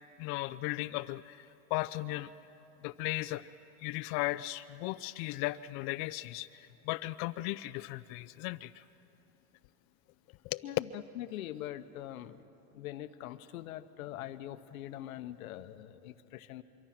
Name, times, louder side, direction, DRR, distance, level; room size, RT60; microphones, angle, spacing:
voice 1, 0.2-2.3 2.8-3.5 3.8-8.8 10.4-10.6, left 18 dB, 50° left, 12 dB, 0.5 m, -36 dB
voice 2, 11.2-12.4 12.7-16.6, left 13 dB, 90° left, 11 dB, 1.0 m, -43 dB
25.0 x 23.0 x 5.9 m, 2.9 s
supercardioid pair, 125°, 41 cm